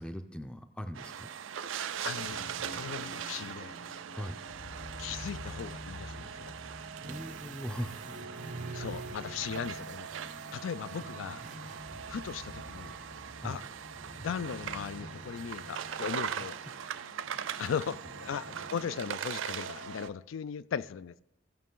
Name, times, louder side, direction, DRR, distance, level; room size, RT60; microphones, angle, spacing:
voice 1, 0.0-1.3 4.1-4.4 7.1-8.0 13.4-13.6, equal, 5° left, 0.4 m, -39 dB
sound 1, 0.9-20.1, right 8 dB, 80° right, 0.4 m, -41 dB
voice 2, 2.0-3.8 5.0-6.5 8.7-10.1 10.5-11.4 12.1-13.0 13.4-13.6 14.2-16.6 17.6-21.2, left 7 dB, 85° left, 0.4 m, -38 dB
sound 2, 2.2-19.0, left 2 dB, 55° left, 0.9 m, -49 dB
sound 3, 7.0-13.4 13.9-14.6 15.0-17.0, right 3 dB, 40° right, 0.6 m, -48 dB
16.0 x 5.9 x 3.8 m
head